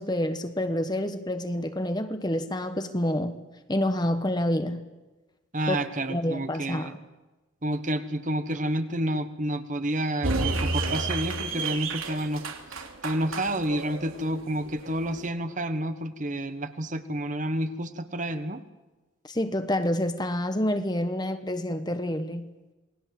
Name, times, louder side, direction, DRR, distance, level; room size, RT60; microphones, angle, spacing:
voice 1, 0.0-3.4 3.7-4.8 5.7-5.8 6.1-7.0 19.3-22.5, left 1 dB, 20° left, 1.2 m, -28 dB
voice 2, 5.5-6.9 7.6-12.4 13.0-18.6, right 1 dB, 35° right, 1.4 m, -29 dB
sound 1, 10.2-15.3, right 3 dB, 90° right, 3.1 m, -31 dB
28.0 x 19.5 x 7.8 m
head